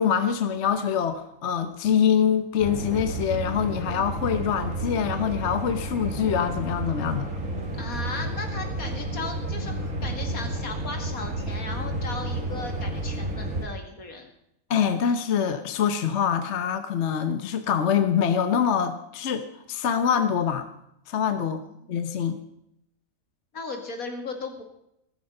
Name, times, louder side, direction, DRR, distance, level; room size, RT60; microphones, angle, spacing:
voice 1, 0.0-7.3 14.7-20.7 21.1-21.6 21.9-22.4, left 8 dB, 55° left, 9 dB, 1.1 m, -24 dB
sound 1, 2.6-13.6, right 1 dB, 60° right, 2.6 m, -31 dB
voice 2, 7.8-14.3 21.7-21.9 23.5-24.6, left 3 dB, 80° left, 4 dB, 2.7 m, -36 dB
15.0 x 14.0 x 5.4 m, 0.79 s
omnidirectional pair, 1.5 m